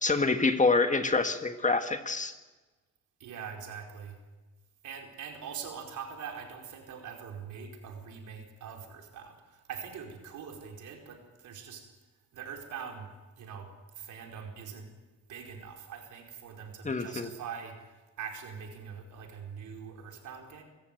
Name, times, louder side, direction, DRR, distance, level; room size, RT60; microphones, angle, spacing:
voice 1, 0.0-2.3 16.8-17.3, left 3 dB, 25° left, 8 dB, 1.7 m, -26 dB
voice 2, 3.2-4.2 4.8-11.8 12.3-14.9 15.3-20.6, right 7 dB, 80° right, 2 dB, 4.8 m, -43 dB
26.5 x 15.0 x 9.2 m, 1.2 s
cardioid pair, 90°, 30 cm